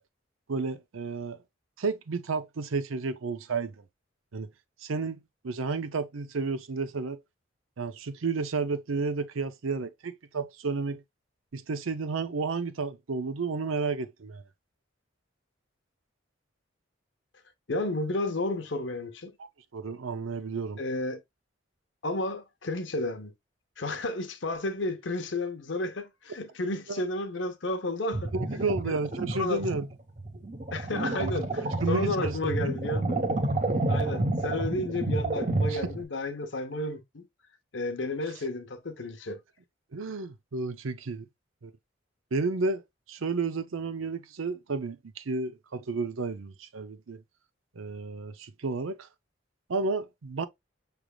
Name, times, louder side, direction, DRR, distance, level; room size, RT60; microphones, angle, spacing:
voice 1, 0.5-1.4 1.8-3.7 4.3-4.5 4.8-7.2 7.8-11.0 11.5-14.4 19.7-20.8 26.9-27.0 28.3-29.9 30.9-31.3 31.8-32.7 35.7-35.8 39.9-41.3 41.6-41.7 42.3-42.8 43.1-47.2 47.8-49.1 49.7-50.5, right 4 dB, 85° right, 0.6 m, -32 dB
voice 2, 17.7-19.3 20.8-21.2 22.0-23.3 23.8-28.3 28.8-28.9 29.3-29.6 30.7-33.2 33.9-37.2 37.7-39.4, left 2 dB, 65° left, 0.9 m, -32 dB
sound 1, 28.1-36.0, right 2 dB, 35° right, 0.8 m, -30 dB
6.1 x 3.4 x 2.3 m
head